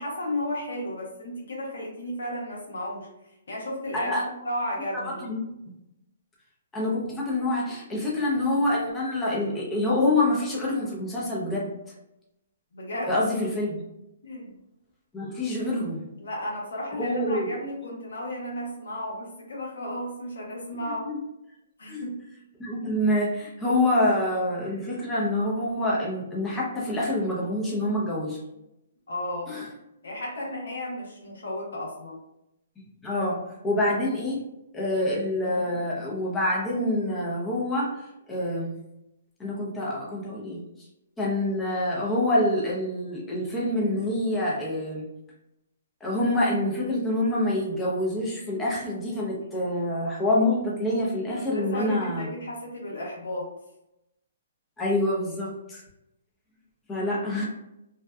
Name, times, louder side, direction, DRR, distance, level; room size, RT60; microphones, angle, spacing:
voice 1, 0.0-3.1 3.5-4.1 4.4-5.3 12.7-13.2 14.2-14.5 16.2-21.0 21.8-22.2 29.1-29.5 30.0-32.2 51.3-53.5, left 1 dB, 80° left, -3 dB, 1.0 m, -33 dB
voice 2, 3.9-4.3 4.9-5.4 6.7-11.7 13.1-13.8 15.1-16.1 17.0-17.5 21.0-21.2 21.9-22.1 22.6-28.4 29.5-29.7 33.0-34.4 34.7-38.7 39.4-40.6 41.2-45.1 46.0-52.3 54.8-55.8 56.9-57.5, left 1 dB, 10° left, -5 dB, 0.6 m, -26 dB
2.6 x 2.1 x 2.2 m, 0.88 s
hypercardioid pair, 150°, 0 cm